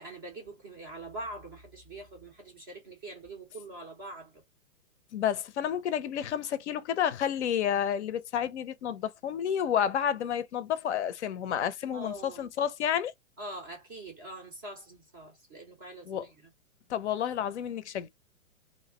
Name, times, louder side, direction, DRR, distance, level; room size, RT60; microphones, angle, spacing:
voice 1, 0.0-4.3 11.9-12.5 13.4-16.3, right 1 dB, 20° right, 0.4 m, -43 dB
voice 2, 5.1-13.1 16.1-16.3 16.9-18.1, left 9 dB, 55° left, 0.5 m, -30 dB
2.4 x 2.0 x 3.4 m
hypercardioid pair, 125°, 42 cm